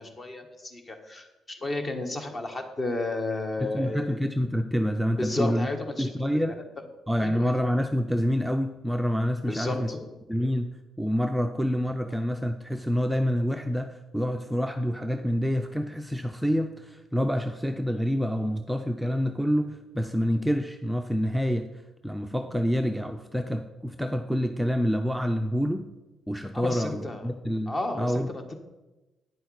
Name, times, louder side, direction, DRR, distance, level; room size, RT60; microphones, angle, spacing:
voice 1, 0.0-4.2 5.2-6.1 6.4-6.5 7.2-7.6 9.5-10.1 26.5-27.2 27.7-28.5, left 2 dB, 35° left, 5 dB, 1.3 m, -32 dB
voice 2, 3.6-5.7 6.0-6.6 7.1-9.9 10.3-10.7 11.0-21.7 22.0-25.8 26.3-28.3, equal, ahead, 5 dB, 0.5 m, -27 dB
9.4 x 6.3 x 4.8 m, 1.1 s
cardioid pair, 90°, 0 cm